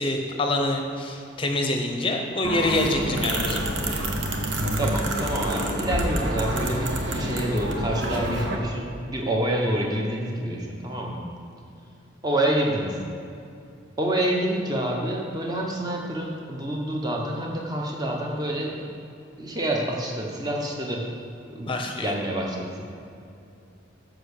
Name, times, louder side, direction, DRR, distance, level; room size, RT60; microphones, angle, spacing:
voice 1, 0.0-3.6 21.7-22.1, left 2 dB, 25° left, 3 dB, 0.8 m, -26 dB
sound 1, 2.4-8.5, right 1 dB, 65° right, 1.0 m, -27 dB
voice 2, 4.8-11.2 12.2-13.0 14.0-18.8 19.4-21.0 21.5-21.7 22.0-22.8, right 1 dB, 20° right, -1 dB, 1.0 m, -27 dB
7.6 x 5.9 x 6.6 m, 2.6 s
head